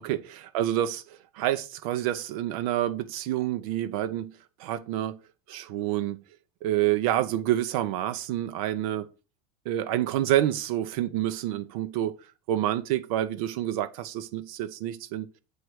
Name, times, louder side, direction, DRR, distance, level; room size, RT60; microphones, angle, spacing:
voice 1, 0.0-5.2 5.5-6.2 6.6-9.1 9.7-12.1 12.5-15.3, right 13 dB, 70° right, 0.6 m, -28 dB
7.9 x 3.1 x 4.6 m
supercardioid pair, 150°, 19 cm